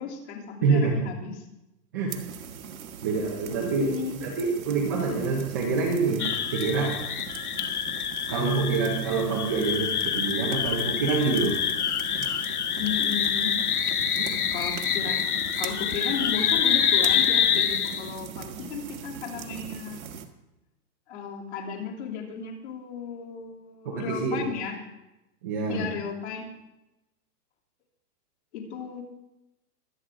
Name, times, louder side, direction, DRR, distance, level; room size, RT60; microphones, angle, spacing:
voice 1, 0.0-1.4 3.8-4.3 12.7-13.6 14.5-20.0 21.1-24.8 25.7-26.5 28.5-29.0, left 6 dB, 40° left, -2 dB, 3.5 m, -35 dB
voice 2, 0.6-1.0 1.9-2.2 3.0-7.0 8.3-11.6 12.2-12.4 14.2-14.4 23.8-24.4 25.4-25.9, right 4 dB, 10° right, -3 dB, 0.8 m, -26 dB
sound 1, 2.1-20.2, right 8 dB, 55° right, 1.6 m, -40 dB
sound 2, 6.2-18.1, left 8 dB, 60° left, 1.3 m, -26 dB
24.0 x 9.3 x 3.8 m, 0.95 s
hypercardioid pair, 175°, 49 cm